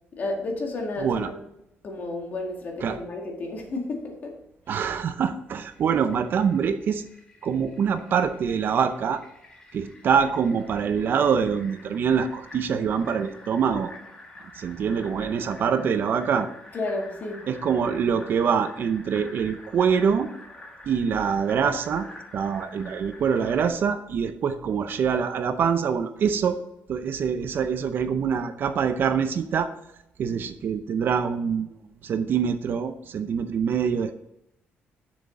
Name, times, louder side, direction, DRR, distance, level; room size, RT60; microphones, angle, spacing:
voice 1, 0.1-1.5 1.8-4.3 4.7-4.9 16.7-17.4, left 2 dB, 45° left, 1 dB, 1.8 m, -32 dB
voice 2, 4.7-7.0 7.4-9.2 9.7-14.0 14.5-16.5 17.5-20.3 20.9-22.1 22.3-26.6 26.9-29.7 30.2-34.1, right 7 dB, 55° right, 9 dB, 0.6 m, -25 dB
Fill (with liquid), 5.7-23.7, left 2 dB, 20° left, 1.7 m, -48 dB
7.5 x 6.2 x 3.7 m, 0.83 s
cardioid pair, 145°, 4 cm